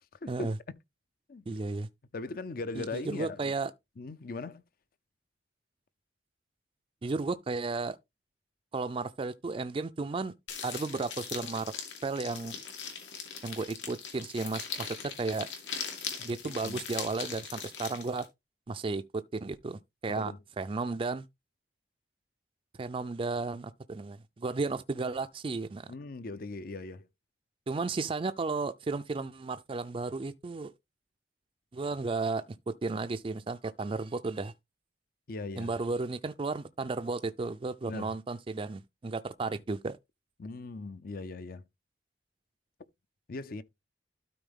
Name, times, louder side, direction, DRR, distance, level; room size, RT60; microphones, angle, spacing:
voice 1, 1.5-1.9 2.8-3.7 7.0-8.0 8.7-10.3 10.6-11.7 12.0-12.5 13.4-14.9 15.2-15.5 16.2-18.2 18.7-19.0 19.3-21.3 22.8-25.9 27.7-30.7 31.7-32.4 32.8-34.5 35.6-40.0, right 3 dB, 30° right, 0.4 m, -34 dB
voice 2, 2.1-3.5 4.0-4.6 16.3-16.8 20.1-20.4 25.9-27.1 35.3-35.7 37.9-38.1 40.4-41.6 43.3-43.6, left 3 dB, 55° left, 0.6 m, -39 dB
sound 1, 10.5-18.3, left 6 dB, 90° left, 2.7 m, -40 dB
12.5 x 4.3 x 3.6 m
head